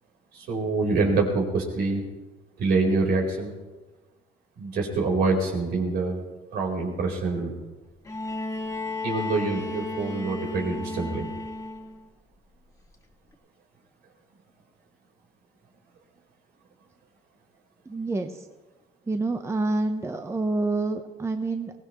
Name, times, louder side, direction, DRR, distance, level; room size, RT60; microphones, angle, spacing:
voice 1, 0.3-2.0 2.6-3.5 4.6-6.2 6.5-7.5 9.0-11.2, right 3 dB, 70° right, 0 dB, 4.2 m, -25 dB
Bowed string instrument, 8.0-12.1 13.3-13.4, left 2 dB, 15° left, 2.1 m, -33 dB
voice 2, 17.9-18.5 19.1-21.7, right 2 dB, 15° right, 6 dB, 0.9 m, -27 dB
22.5 x 17.0 x 3.1 m, 1.2 s
cardioid pair, 110°, 17 cm